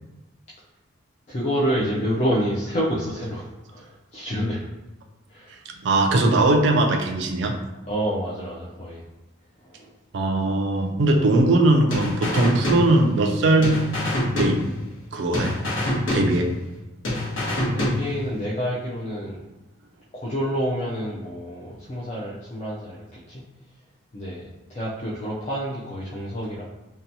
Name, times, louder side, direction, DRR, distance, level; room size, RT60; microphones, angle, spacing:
voice 1, 1.3-4.6 5.3-5.5 7.9-9.0 9.6-9.9 17.7-19.4 20.1-23.4 24.1-26.6, equal, 35° left, -6 dB, 0.4 m, -28 dB
voice 2, 5.8-7.5 10.1-13.8 14.3-14.6 15.1-15.5 16.1-16.5, right 2 dB, 60° right, 3 dB, 0.4 m, -20 dB
sound 1, 11.9-13.3 13.6-15.1 15.3-16.8 17.0-18.4, left 1 dB, 75° left, 0.9 m, -26 dB
2.7 x 2.2 x 2.6 m, 1.0 s
head